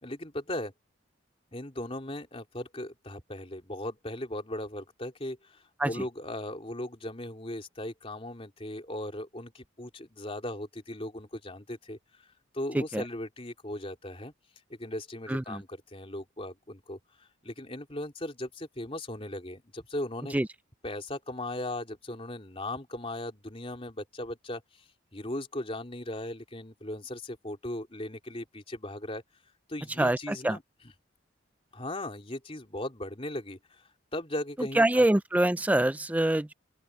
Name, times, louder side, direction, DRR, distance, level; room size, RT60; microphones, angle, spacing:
voice 1, 0.0-0.7 1.5-12.0 12.5-14.3 14.7-20.3 20.8-24.6 25.1-29.2 29.7-30.6 31.7-33.8 34.1-35.0, left 1 dB, 30° left, 3.2 m, -38 dB
voice 2, 15.3-15.6 20.3-20.5 30.0-30.6 34.6-36.5, right 1 dB, 5° right, 0.3 m, -25 dB
open air
head